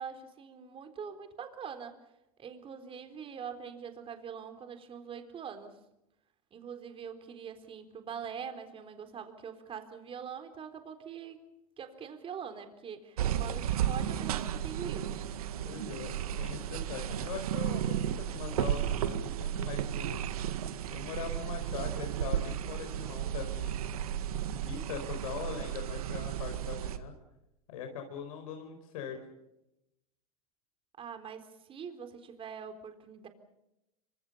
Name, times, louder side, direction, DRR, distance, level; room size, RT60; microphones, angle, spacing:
voice 1, 0.0-2.0 2.4-5.8 6.5-11.4 11.8-15.2 31.0-33.3, right 7 dB, 30° right, 8 dB, 3.8 m, -43 dB
sound 1, 13.2-27.0, right 10 dB, 75° right, 1.9 m, -34 dB
voice 2, 15.6-20.3 20.9-24.3 24.6-27.1 27.7-29.2, left 7 dB, 70° left, 5 dB, 4.9 m, -42 dB
26.5 x 25.0 x 5.6 m, 0.88 s
hypercardioid pair, 110°, 19 cm